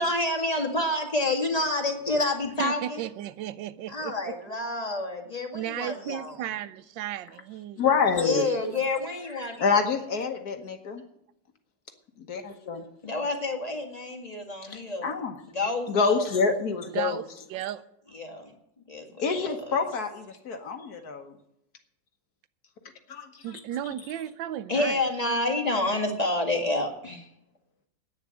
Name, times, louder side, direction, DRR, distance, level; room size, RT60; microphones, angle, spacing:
voice 1, 0.0-3.0 3.9-6.4 8.2-9.8 13.0-15.2 15.5-16.3 18.1-18.5 18.9-19.8 24.7-27.3, left 2 dB, 20° left, 1.9 m, -29 dB
voice 2, 2.6-4.4 5.5-7.8 8.3-8.6 16.9-17.2 17.5-17.8 23.4-25.0, right 12 dB, 85° right, 1.3 m, -34 dB
voice 3, 7.8-8.5 9.6-11.0 12.2-12.8 14.6-15.4 15.9-17.2 19.2-21.3 23.1-23.3, left 5 dB, 60° left, 1.6 m, -27 dB
10.5 x 9.4 x 7.6 m
omnidirectional pair, 2.0 m